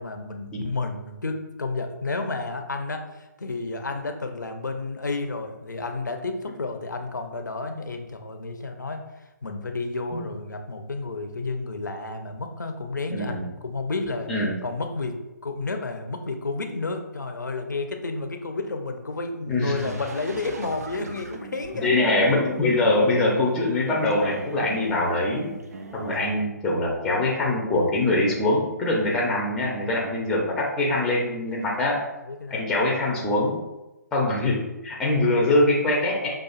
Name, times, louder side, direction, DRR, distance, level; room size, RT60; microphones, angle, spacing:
voice 1, 0.0-9.0 9.4-14.3 14.6-22.1 31.5-31.8 32.3-32.6, left 3 dB, 75° left, 5 dB, 0.6 m, -31 dB
voice 2, 13.1-13.5 14.3-14.5 19.5-19.9 21.8-25.5 25.9-32.0 32.5-33.6 34.1-36.3, left 2 dB, 5° left, -2 dB, 0.5 m, -23 dB
sound 1, 19.8-26.3, right 4 dB, 55° right, 0.5 m, -40 dB
5.7 x 2.4 x 2.4 m, 1.0 s
figure-of-eight pair, 140°, 10 cm